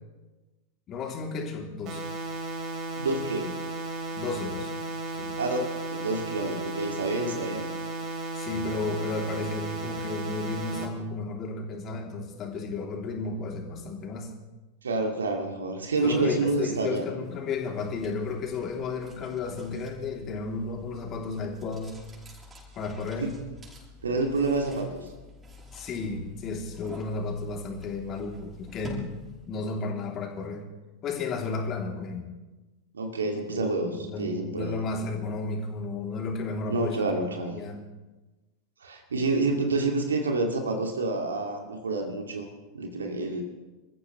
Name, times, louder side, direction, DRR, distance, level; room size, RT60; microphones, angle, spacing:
voice 1, 0.9-2.0 4.1-4.8 5.1-5.4 8.3-14.3 16.0-22.0 22.7-23.3 25.7-29.1 29.5-30.6 31.0-32.3 33.5-37.2 37.5-37.8, left 3 dB, 30° left, 1 dB, 3.1 m, -33 dB
sound 1, 1.9-10.9, right 2 dB, 40° right, 3.1 m, -34 dB
voice 2, 3.0-3.5 5.4-7.7 14.8-17.0 23.2-23.3 24.0-25.1 32.9-33.9 34.2-34.8 36.7-37.6 38.8-42.5 42.7-43.4, right 3 dB, 70° right, 3 dB, 2.4 m, -28 dB
sound 2, 17.2-29.6, equal, 15° right, 6.8 m, -48 dB
28.0 x 14.5 x 3.3 m, 1.2 s
figure-of-eight pair, 90°, 0 cm